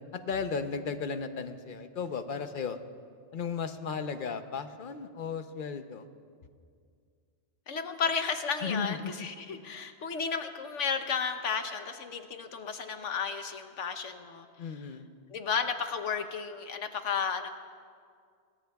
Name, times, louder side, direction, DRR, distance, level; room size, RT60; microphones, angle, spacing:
voice 1, 0.1-2.8 3.3-6.1 8.6-9.0 14.6-15.1, left 5 dB, 50° left, 9 dB, 0.8 m, -35 dB
voice 2, 7.7-14.5 15.3-17.5, left 6 dB, 85° left, 7 dB, 1.3 m, -33 dB
26.0 x 19.5 x 2.3 m, 2.2 s
omnidirectional pair, 1.2 m